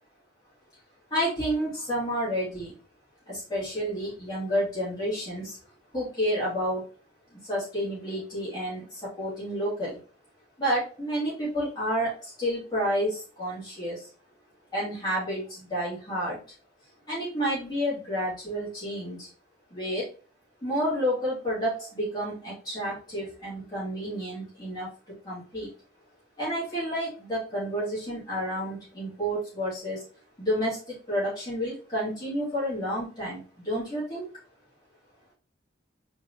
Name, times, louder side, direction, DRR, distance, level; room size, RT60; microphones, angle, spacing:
voice 1, 1.1-2.7 3.3-5.6 5.9-6.8 7.3-10.0 10.6-14.1 14.7-16.4 17.1-19.3 19.7-20.1 20.6-24.9 25.2-25.7 26.4-30.0 30.4-34.2, equal, 20° left, -9 dB, 2.6 m, -30 dB
4.7 x 3.9 x 2.9 m, 0.36 s
head